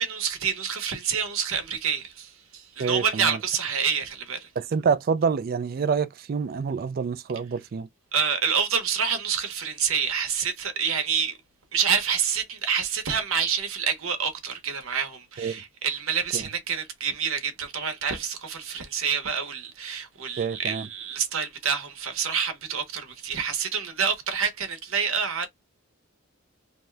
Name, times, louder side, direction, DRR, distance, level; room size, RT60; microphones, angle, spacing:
voice 1, 0.0-4.5 8.1-11.4 11.7-25.5, right 7 dB, 75° right, 0.9 m, -27 dB
voice 2, 2.8-3.4 4.6-7.9 15.4-15.6 16.3-16.4 20.4-20.9, right 5 dB, 45° right, 0.3 m, -27 dB
2.7 x 2.2 x 3.2 m
head